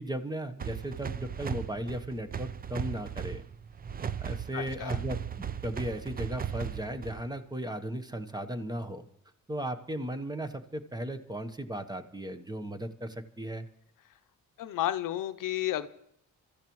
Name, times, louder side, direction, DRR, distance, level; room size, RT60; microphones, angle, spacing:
voice 1, 0.0-3.4 4.2-9.1 9.5-13.7, right 1 dB, 10° right, 9 dB, 1.0 m, -36 dB
sound 1, 0.6-7.4, right 8 dB, 30° right, 0.5 m, -37 dB
voice 2, 4.5-5.0 14.6-15.9, left 13 dB, 75° left, 11 dB, 0.7 m, -32 dB
26.5 x 13.5 x 3.1 m, 0.72 s
cardioid pair, 95°, 32 cm